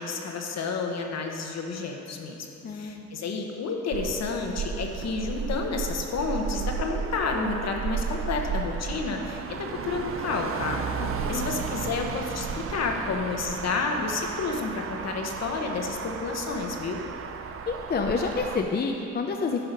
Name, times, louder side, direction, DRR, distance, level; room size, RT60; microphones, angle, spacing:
voice 1, 0.0-10.8 11.3-17.0, left 4 dB, 60° left, 2 dB, 1.1 m, -30 dB
voice 2, 2.6-3.1 11.0-11.5 17.7-19.7, left 4 dB, 35° left, 2 dB, 0.6 m, -29 dB
Motor vehicle (road), 3.9-18.6, right 6 dB, 45° right, 0.6 m, -34 dB
10.5 x 5.6 x 5.3 m, 2.8 s
cardioid pair, 90°, 30 cm